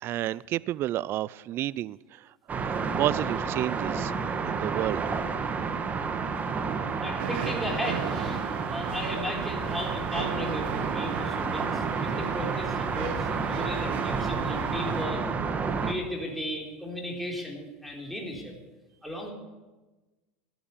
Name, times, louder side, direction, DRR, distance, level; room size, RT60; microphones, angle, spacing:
voice 1, 0.0-2.3 2.7-4.1 4.5-5.0, right 14 dB, 40° right, 0.4 m, -31 dB
sound 1, 2.5-15.9, right 5 dB, 25° right, 1.5 m, -30 dB
voice 2, 7.0-8.4 8.7-15.2 15.8-18.5 19.0-19.3, left 1 dB, ahead, 4.1 m, -35 dB
sound 2, 7.2-15.0, right 9 dB, 75° right, 1.5 m, -37 dB
15.0 x 11.0 x 8.4 m
supercardioid pair, 120°, 6 cm